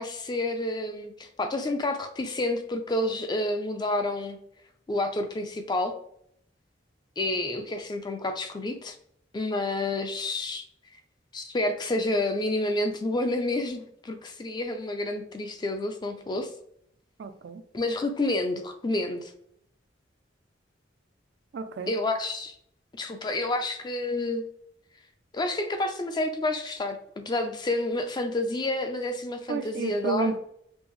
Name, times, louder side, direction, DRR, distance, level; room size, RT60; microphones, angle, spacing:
voice 1, 0.0-4.4 4.9-5.9 7.2-9.0 9.3-10.6 11.3-16.5 17.7-19.3 21.9-22.5 22.9-24.5 25.3-30.3, left 2 dB, 25° left, 6 dB, 0.4 m, -29 dB
voice 2, 17.2-17.6 21.5-21.9 29.5-30.4, right 3 dB, 60° right, 10 dB, 0.3 m, -30 dB
5.3 x 2.0 x 3.0 m, 0.69 s
head